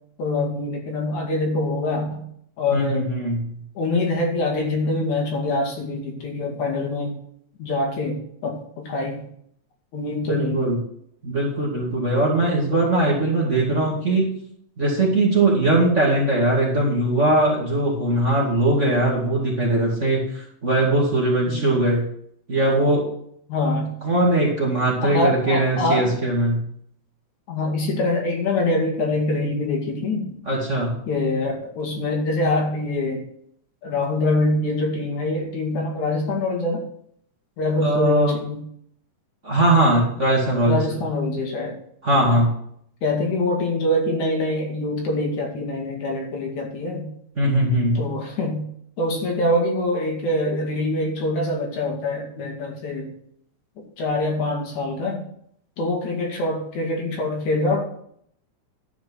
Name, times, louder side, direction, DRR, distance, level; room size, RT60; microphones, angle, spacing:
voice 1, 0.2-2.3 2.6-3.1 3.8-7.2 7.6-9.2 9.9-10.7 21.5-21.8 23.5-23.9 25.0-26.1 27.5-30.4 31.1-33.2 33.8-36.9 37.6-38.6 40.6-41.8 42.2-42.4 43.0-47.1 48.0-48.7 49.0-53.1 53.8-55.2 55.8-57.8, left 2 dB, 70° left, 1 dB, 3.6 m, -24 dB
voice 2, 2.7-3.4 10.3-10.8 11.2-14.3 14.8-22.1 22.5-23.0 24.0-26.6 30.5-30.9 37.8-38.3 39.4-40.8 42.0-42.6 47.4-48.0, right 1 dB, 25° right, -3 dB, 2.4 m, -20 dB
12.0 x 5.1 x 7.8 m, 0.67 s
omnidirectional pair, 3.5 m